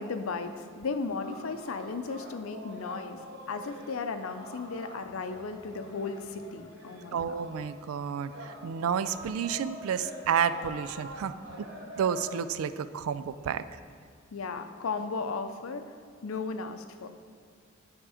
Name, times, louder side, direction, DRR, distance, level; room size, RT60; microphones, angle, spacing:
voice 1, 0.0-7.4 14.3-15.8 16.2-17.1, left 4 dB, 80° left, 8 dB, 0.5 m, -35 dB
sound 1, 1.1-7.9 8.3-12.3, equal, 65° right, 1.3 m, -46 dB
voice 2, 7.1-11.7 12.0-13.6, right 7 dB, 85° right, 13 dB, 0.3 m, -31 dB
9.9 x 3.6 x 4.9 m, 2.2 s
head